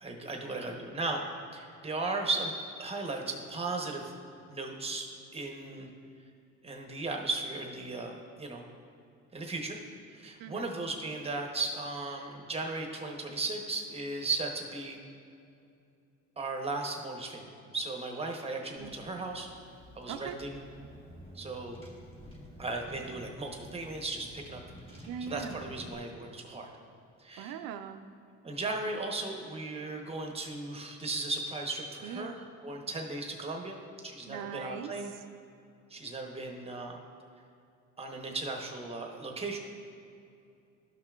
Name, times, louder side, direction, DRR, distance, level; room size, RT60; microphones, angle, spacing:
voice 1, 0.0-1.2 1.5-2.5 2.8-4.1 4.5-5.1 5.3-5.9 6.6-8.6 9.3-9.8 10.1-15.0 16.4-19.5 19.9-20.6 21.3-21.8 22.6-24.6 24.9-26.7 27.2-27.6 28.4-35.1 35.9-37.0 38.0-39.6, right 3 dB, 20° right, 2 dB, 0.9 m, -36 dB
voice 2, 10.4-10.7 18.8-18.9 20.1-20.4 25.1-25.7 27.4-28.0 32.0-32.3 34.3-34.9, right 7 dB, 85° right, 9 dB, 0.5 m, -40 dB
Car / Engine, 18.8-26.0, equal, 15° left, 1.6 m, -50 dB
13.0 x 5.7 x 2.4 m, 2.6 s
cardioid pair, 125°, 33 cm